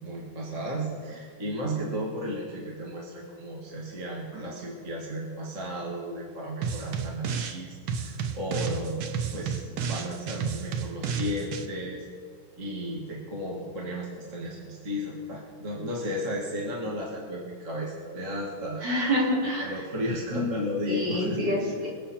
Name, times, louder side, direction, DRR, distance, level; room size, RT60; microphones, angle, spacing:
voice 1, 0.0-9.0 9.3-12.1 12.6-18.8 19.6-21.6, equal, 40° right, -3 dB, 2.4 m, -34 dB
sound 1, 6.6-7.6 7.9-11.7, right 6 dB, 90° right, 1.8 m, -32 dB
voice 2, 18.8-19.7 20.3-20.5 20.9-21.9, equal, 65° right, -4 dB, 4.1 m, -27 dB
25.0 x 8.6 x 4.4 m, 2.1 s
omnidirectional pair, 2.1 m